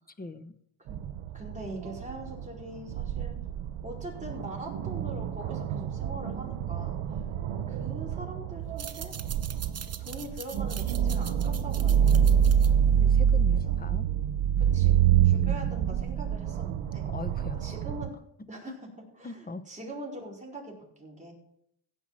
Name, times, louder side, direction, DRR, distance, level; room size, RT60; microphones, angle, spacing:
voice 1, 0.2-0.6 13.0-14.1 15.3-15.7 17.1-17.6 18.7-18.8 19.2-19.6, left 2 dB, 20° left, 12 dB, 1.0 m, -40 dB
sound 1, 0.9-18.1, right 9 dB, 85° right, 1.0 m, -27 dB
voice 2, 1.3-3.4 3.8-7.0 7.7-9.2 10.0-12.8 13.5-13.8 14.6-15.0 15.2-17.1 17.6-18.1 18.5-18.7 19.2-21.3, right 1 dB, 15° right, -3 dB, 5.0 m, -42 dB
sound 2, 8.6-13.8, right 7 dB, 30° right, 0.9 m, -43 dB
16.0 x 5.7 x 7.6 m, 0.72 s
cardioid pair, 100°, 48 cm